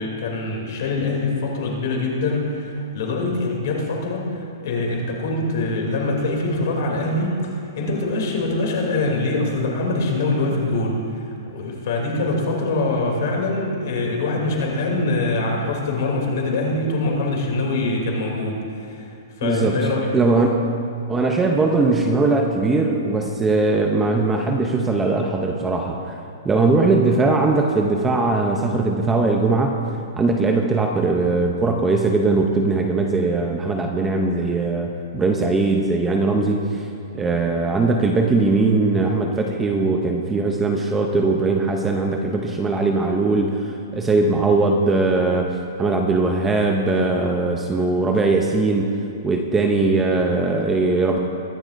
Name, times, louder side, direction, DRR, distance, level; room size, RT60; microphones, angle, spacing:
voice 1, 0.0-20.1, left 2 dB, 50° left, -1 dB, 2.6 m, -24 dB
voice 2, 19.4-19.8 20.1-20.7 21.1-26.2 26.4-29.8 30.2-36.9 37.1-48.9 49.2-51.2, right 3 dB, 10° right, 2 dB, 0.5 m, -20 dB
22.5 x 11.5 x 2.5 m, 2.6 s
hypercardioid pair, 180°, 2 cm